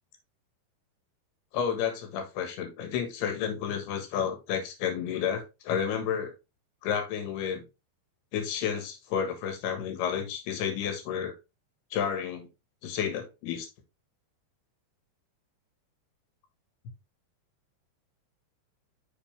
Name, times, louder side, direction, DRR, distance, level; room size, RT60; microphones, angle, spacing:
voice 1, 1.5-6.3 6.8-7.6 8.3-11.4 11.9-12.5 12.8-13.7, left 8 dB, 80° left, 3.4 m, -31 dB
6.5 x 5.3 x 3.4 m
omnidirectional pair, 4.6 m